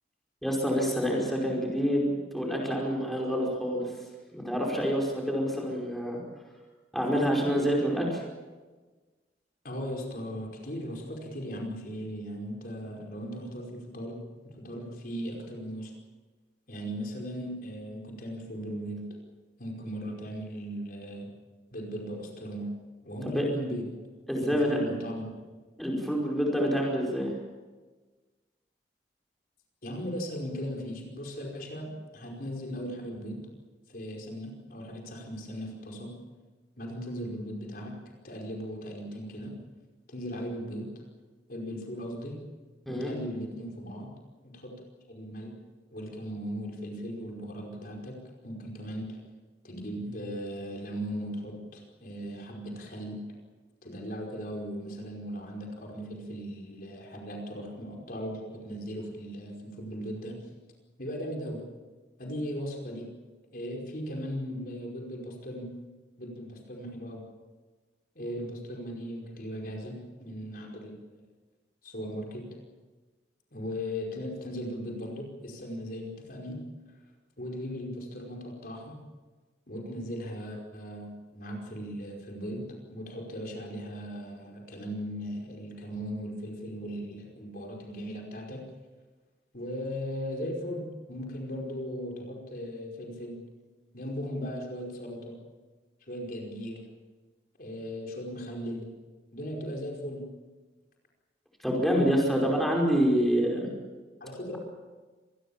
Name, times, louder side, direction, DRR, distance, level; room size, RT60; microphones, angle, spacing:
voice 1, 0.4-3.9 4.3-6.2 6.9-8.2 23.2-23.5 24.3-24.8 25.8-27.3 42.9-43.1 101.6-103.7, equal, ahead, -2 dB, 5.0 m, -27 dB
voice 2, 9.6-15.9 16.7-19.1 19.6-21.3 21.7-22.7 23.0-23.8 24.4-25.3 29.8-33.4 33.9-36.1 36.8-39.5 40.1-41.0 41.5-42.4 42.9-44.1 44.4-44.7 45.1-45.5 45.9-48.2 48.4-49.2 49.6-53.2 53.8-60.4 61.0-61.6 62.2-63.1 63.5-65.7 66.2-67.2 68.1-71.2 71.8-72.5 73.5-76.6 77.4-79.0 79.7-88.6 89.5-93.4 93.9-95.4 96.1-96.8 97.6-98.8 99.3-100.2 104.2-104.6, equal, 55° left, 0 dB, 5.1 m, -38 dB
25.5 x 20.5 x 7.2 m, 1.3 s
head